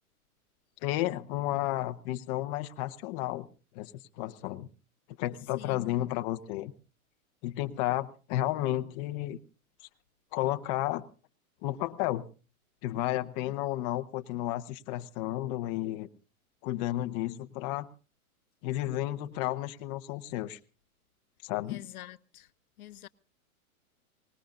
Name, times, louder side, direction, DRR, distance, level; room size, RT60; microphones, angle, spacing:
voice 1, 0.8-3.5 3.7-3.9 4.2-4.7 5.2-6.7 7.4-9.4 10.3-11.1 11.6-12.3 12.8-16.1 16.6-17.9 18.6-20.6 21.4-21.8, left 15 dB, 30° left, 1.0 m, -32 dB
voice 2, 5.6-6.0 13.5-13.6 21.7-22.5 22.8-23.1, left 13 dB, 80° left, 1.0 m, -46 dB
24.0 x 20.0 x 2.6 m
hypercardioid pair, 155°, 43 cm